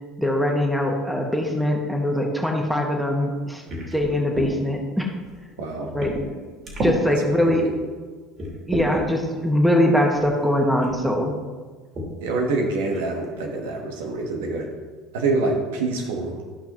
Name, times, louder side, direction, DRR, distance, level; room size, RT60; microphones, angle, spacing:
voice 1, 0.2-3.6 3.9-5.1 5.9-6.1 6.8-7.6 8.7-11.3, left 1 dB, ahead, 1 dB, 1.6 m, -22 dB
sound 1, 3.7-4.5 5.3-5.4 6.0-6.3 6.6-7.0 7.7-7.8 8.4-9.1 10.2-10.3 10.8-11.0 11.9-12.1 12.5-12.6 12.9-13.3, right 1 dB, 40° right, 2.8 m, -30 dB
voice 2, 5.6-5.9 7.1-7.7 12.2-14.7 15.1-16.4, right 3 dB, 75° right, 1 dB, 1.2 m, -26 dB
13.5 x 5.7 x 3.0 m, 1.4 s
hypercardioid pair, 75°, 0 cm